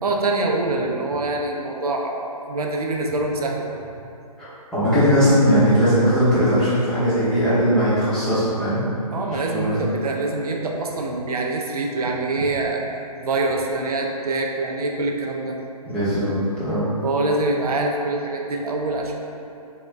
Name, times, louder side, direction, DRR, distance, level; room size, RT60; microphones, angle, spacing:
voice 1, 0.0-3.8 9.1-12.8 13.2-15.6 17.0-19.1, right 2 dB, 65° right, 0 dB, 0.5 m, -25 dB
voice 2, 4.4-8.8 9.5-9.8 15.9-16.9, equal, 5° left, -14 dB, 0.7 m, -19 dB
3.7 x 2.2 x 3.2 m, 2.7 s
figure-of-eight pair, 145°, 20 cm